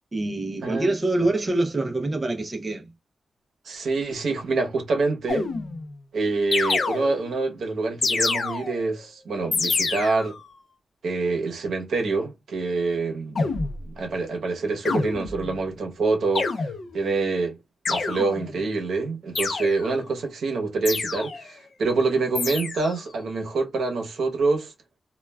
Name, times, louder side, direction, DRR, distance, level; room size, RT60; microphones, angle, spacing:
voice 1, 0.1-2.9, right 2 dB, 25° right, 0.4 m, -25 dB
voice 2, 0.6-0.9 3.6-5.5 6.1-10.4 11.0-13.4 13.8-17.6 17.9-24.7, right 3 dB, 80° right, 0.7 m, -26 dB
sound 1, 5.3-5.9 6.5-7.4 8.0-8.9 9.5-10.4 13.4-13.8 14.9-15.6 16.4-17.0 17.9-18.6 19.4-20.0 20.9-21.5 22.4-23.0, left 4 dB, 50° left, 0.5 m, -27 dB
2.2 x 2.2 x 3.2 m
wide cardioid pair, 145°, 0 cm